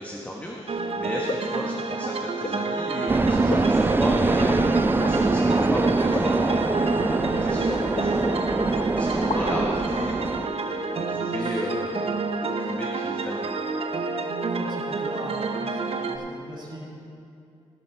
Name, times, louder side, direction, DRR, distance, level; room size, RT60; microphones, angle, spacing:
voice 1, 0.0-13.5, equal, 15° left, -2 dB, 1.4 m, -34 dB
sound 1, 0.7-16.2, right 3 dB, 55° right, 0.8 m, -29 dB
sound 2, 1.3-1.6 2.4-2.6 3.5-4.0 4.4-4.6 5.0-5.2 6.1-6.4 7.2-7.4 8.0-8.5 8.8-8.9 9.2-9.7, left 3 dB, 40° left, 0.9 m, -33 dB
sound 3, 3.1-10.5, right 3 dB, 15° right, 0.4 m, -23 dB
voice 2, 14.6-16.9, right 1 dB, 40° right, -5 dB, 2.8 m, -39 dB
17.0 x 6.4 x 4.6 m, 2.7 s
cardioid pair, 65°, 12 cm